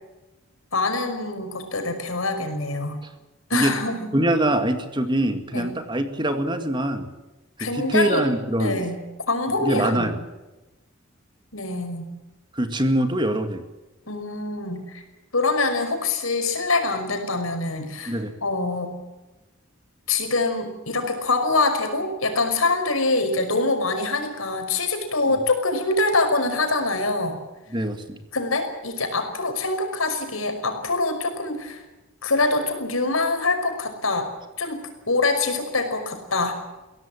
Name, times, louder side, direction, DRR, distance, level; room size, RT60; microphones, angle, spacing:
voice 1, 0.7-3.0 3.5-4.1 5.5-5.7 7.6-8.3 8.6-9.0 9.3-10.1 11.5-12.1 14.1-15.0 15.3-19.0 20.1-27.4 28.3-31.8 32.2-34.3 34.6-34.8 35.1-36.5, left 3 dB, 80° left, 5 dB, 5.5 m, -24 dB
voice 2, 4.1-7.1 7.6-8.8 9.6-10.2 12.5-13.6 18.1-18.3 27.7-28.2, right 1 dB, 20° right, 7 dB, 2.1 m, -23 dB
23.0 x 17.0 x 8.9 m, 1.1 s
head